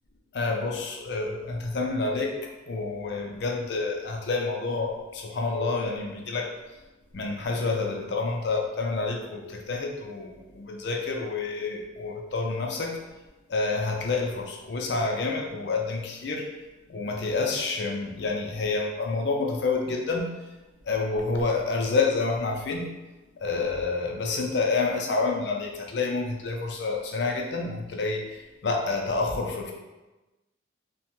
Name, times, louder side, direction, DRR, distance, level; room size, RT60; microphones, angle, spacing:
voice 1, 0.3-6.5 7.1-13.0 13.5-16.5 16.9-20.3 20.9-22.9 23.4-29.7, left 3 dB, 60° left, 0 dB, 0.4 m, -28 dB
2.7 x 2.2 x 2.9 m, 1.1 s
head